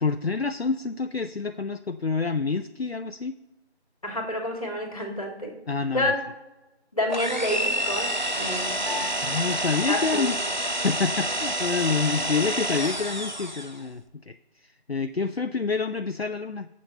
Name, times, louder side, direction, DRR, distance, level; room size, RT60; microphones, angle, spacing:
voice 1, 0.0-3.4 5.7-6.1 9.2-16.7, left 4 dB, 65° left, 10 dB, 0.5 m, -28 dB
voice 2, 4.0-5.5 5.9-6.1 6.9-9.1 9.9-10.3, left 1 dB, 30° left, 2 dB, 1.9 m, -29 dB
sound 1, 7.1-13.8, right 1 dB, 45° right, 0.7 m, -28 dB
Piano, 8.9-11.4, left 4 dB, 25° right, 1.3 m, -42 dB
17.5 x 7.3 x 2.9 m, 1.1 s
figure-of-eight pair, 170°, 34 cm